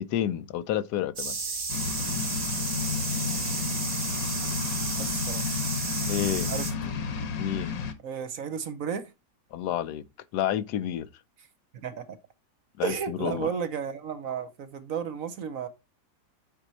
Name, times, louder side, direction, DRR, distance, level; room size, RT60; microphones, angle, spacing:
voice 1, 0.0-1.4 6.1-6.5 7.4-7.8 9.5-10.0 10.3-11.1 12.8-13.5, left 11 dB, 75° left, 1.2 m, -29 dB
sound 1, 1.2-6.7, right 4 dB, 40° right, 1.7 m, -32 dB
sound 2, 1.7-7.9, left 5 dB, 60° left, 1.4 m, -32 dB
voice 2, 5.0-5.7 6.5-7.0 8.0-9.1 11.7-12.1 12.8-15.7, right 7 dB, 60° right, 1.1 m, -33 dB
8.2 x 4.5 x 4.2 m
omnidirectional pair, 1.8 m